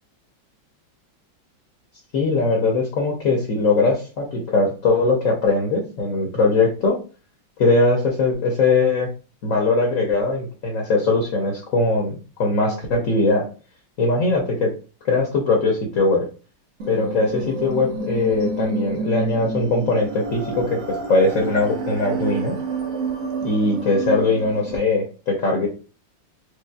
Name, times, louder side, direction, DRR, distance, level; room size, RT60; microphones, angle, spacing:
voice 1, 2.1-7.0 7.6-9.1 9.4-13.5 14.0-14.7 15.0-16.3 16.9-22.6 23.4-25.7, left 3 dB, 55° left, 0 dB, 1.0 m, -20 dB
sound 1, 16.8-24.8, right 3 dB, 60° right, 0.9 m, -29 dB
4.9 x 2.3 x 2.3 m, 0.35 s
omnidirectional pair, 2.0 m